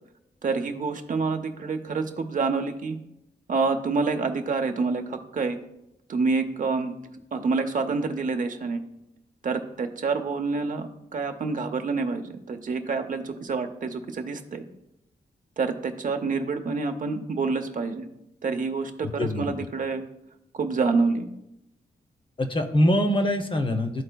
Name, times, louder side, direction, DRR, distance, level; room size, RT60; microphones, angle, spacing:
voice 1, 0.4-3.0 3.5-5.6 6.1-6.9 7.3-8.8 9.4-14.6 15.6-18.1 18.4-20.0 20.5-21.3, right 4 dB, 50° right, 6 dB, 0.7 m, -27 dB
voice 2, 19.0-19.5 22.4-24.0, left 1 dB, 30° left, 6 dB, 0.7 m, -24 dB
12.5 x 4.4 x 2.2 m, 0.84 s
wide cardioid pair, 120°, 17 cm